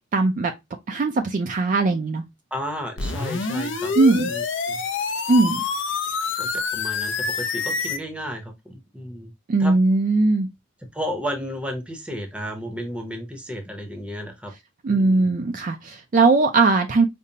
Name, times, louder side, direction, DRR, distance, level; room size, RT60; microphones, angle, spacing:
voice 1, 0.1-0.5 0.9-2.2 3.9-4.3 5.3-5.6 9.5-10.5 14.8-17.0, right 3 dB, 40° right, 0.3 m, -19 dB
voice 2, 2.5-3.9 4.2-4.4 4.7-4.8 6.4-9.3 9.6-9.7 10.9-14.5 14.9-15.2, equal, 5° right, 0.7 m, -33 dB
sound 1, 3.0-8.0, left 4 dB, 65° left, 0.5 m, -27 dB
5.1 x 2.0 x 2.7 m
head